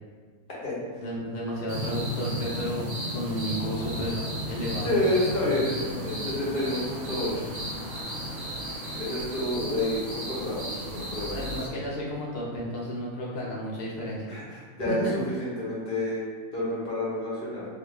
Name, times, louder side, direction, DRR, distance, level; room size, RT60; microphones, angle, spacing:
voice 1, 1.0-4.2 4.5-4.9 11.3-14.2 14.9-15.1, equal, 75° left, -5 dB, 0.5 m, -32 dB
sound 1, 1.7-11.7, equal, 65° right, 1.0 m, -34 dB
voice 2, 4.8-7.5 9.0-11.5 14.3-16.2 16.5-17.7, left 1 dB, 40° left, -8 dB, 1.1 m, -29 dB
3.0 x 2.4 x 3.1 m, 1.5 s
omnidirectional pair, 1.6 m